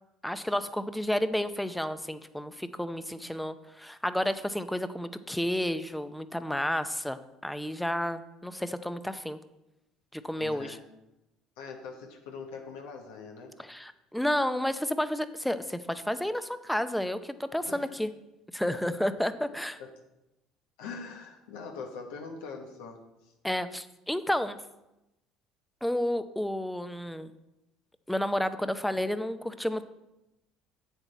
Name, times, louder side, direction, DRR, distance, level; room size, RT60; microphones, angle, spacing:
voice 1, 0.2-9.4 10.1-10.8 13.6-18.1 18.5-19.8 23.4-24.6 25.8-27.3 28.1-29.8, left 1 dB, 5° left, 12 dB, 0.6 m, -31 dB
voice 2, 10.4-10.8 11.6-13.6 17.6-17.9 18.9-19.0 19.8-19.9 20.8-23.3, left 5 dB, 80° left, 2 dB, 1.1 m, -42 dB
7.9 x 7.2 x 4.2 m, 0.94 s
hypercardioid pair, 70°, 0 cm